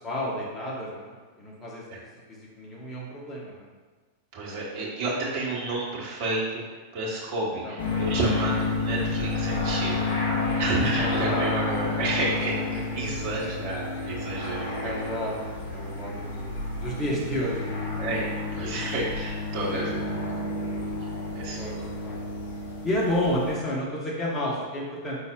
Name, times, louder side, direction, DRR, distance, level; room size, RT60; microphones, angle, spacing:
voice 1, 0.0-1.9 2.3-3.7 7.6-7.8 10.9-11.7 12.6-13.5 14.8-15.4 15.7-16.5 16.8-17.8 19.7-20.4 21.6-22.2 22.8-25.2, left 1 dB, 20° left, -4 dB, 1.2 m, -31 dB
voice 2, 4.3-6.6 6.9-10.1 10.4-15.0 18.0-20.3 21.0-21.7, right 2 dB, 45° right, -5 dB, 1.5 m, -30 dB
sound 1, 7.8-23.5, left 3 dB, 55° left, 1.0 m, -30 dB
5.2 x 4.1 x 2.4 m, 1.4 s
figure-of-eight pair, 90°, 0 cm